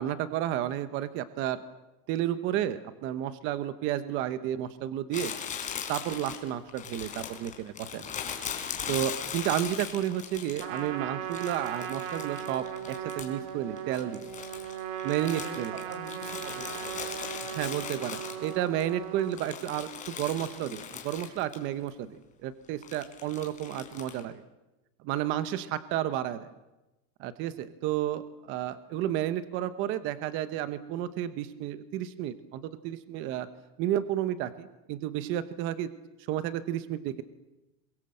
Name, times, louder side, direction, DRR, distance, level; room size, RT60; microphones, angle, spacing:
voice 1, 0.0-1.6 2.1-5.3 5.9-8.1 8.9-14.3 15.0-15.7 17.5-24.4 25.0-26.5 27.2-33.5 33.8-35.9 36.3-37.2, right 12 dB, 25° right, 13 dB, 0.9 m, -32 dB
Crumpling crinkling, 5.1-10.9 11.3-13.5 13.8-18.8 19.2-21.6 21.9-22.0 22.8-24.2, left 8 dB, 15° left, 3.7 m, -39 dB
Trumpet, 10.6-19.4, right 9 dB, 40° right, 2.5 m, -38 dB
voice 2, 15.2-17.6, right 3 dB, 80° right, 8 dB, 6.6 m, -44 dB
27.5 x 22.5 x 7.7 m, 0.99 s
supercardioid pair, 165°, 45 cm